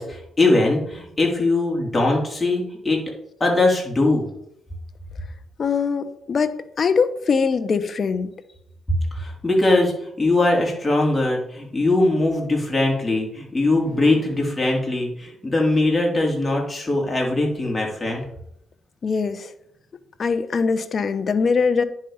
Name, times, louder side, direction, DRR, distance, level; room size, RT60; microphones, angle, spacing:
voice 1, 0.0-3.0 3.4-4.3 9.1-18.2, left 2 dB, 15° left, -1 dB, 3.5 m, -21 dB
voice 2, 5.6-8.3 19.0-19.5 20.2-21.8, left 5 dB, 45° left, 11 dB, 0.9 m, -22 dB
9.9 x 5.0 x 5.7 m, 0.74 s
cardioid pair, 90°, 0 cm